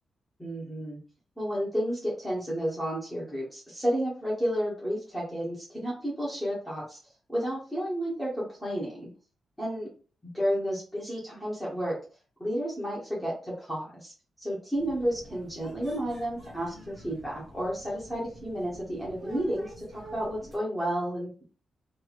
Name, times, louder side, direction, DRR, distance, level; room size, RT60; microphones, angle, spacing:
voice 1, 0.4-1.0 1.4-7.0 7.3-9.1 9.6-9.9 10.3-12.0 12.4-21.4, equal, 5° left, -7 dB, 0.8 m, -31 dB
sound 1, 14.7-20.6, equal, 40° right, 1.1 m, -48 dB
2.8 x 2.6 x 2.4 m, 0.39 s
wide cardioid pair, 170°, 0 cm